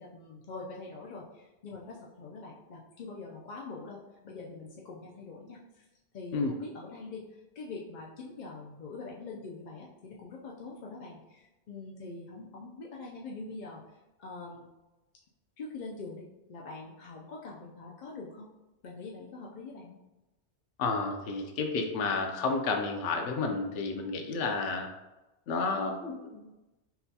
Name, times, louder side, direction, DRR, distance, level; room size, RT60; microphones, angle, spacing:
voice 1, 0.0-4.0 4.2-5.8 6.1-14.7 15.6-18.5 18.8-20.0, left 3 dB, 55° left, -3 dB, 0.5 m, -44 dB
voice 2, 20.8-24.9 25.5-26.4, left 4 dB, 80° left, 3 dB, 0.9 m, -31 dB
5.8 x 2.2 x 2.7 m, 1.0 s
omnidirectional pair, 1.2 m